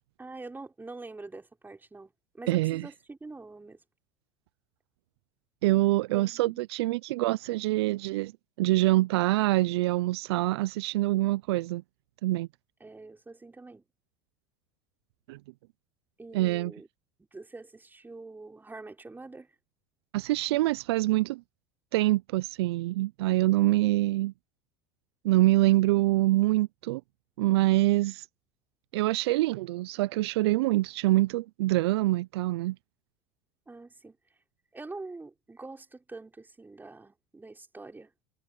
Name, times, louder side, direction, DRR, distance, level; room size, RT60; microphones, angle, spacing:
voice 1, 0.2-3.8 6.1-6.6 12.8-13.8 16.2-16.9 17.3-19.5 33.7-34.2 34.7-38.1, right 3 dB, 15° right, 5.7 m, -45 dB
voice 2, 2.5-2.9 5.6-8.3 8.6-11.8 12.2-12.5 15.3-15.4 16.3-16.7 20.1-21.4 21.9-24.3 25.2-27.0 27.4-28.3 28.9-32.8, right 17 dB, 75° right, 0.6 m, -25 dB
hypercardioid pair, 85°, 14 cm